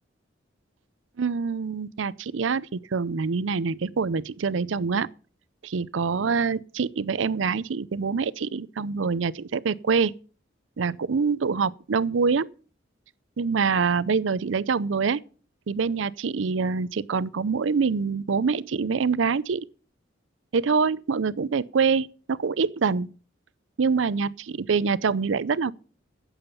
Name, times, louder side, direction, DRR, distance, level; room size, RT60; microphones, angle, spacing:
voice 1, 1.2-5.1 5.6-10.1 10.8-12.5 13.4-15.2 15.7-19.7 20.5-23.1 23.8-25.7, right 5 dB, 80° right, 0.5 m, -25 dB
15.5 x 7.2 x 5.4 m
head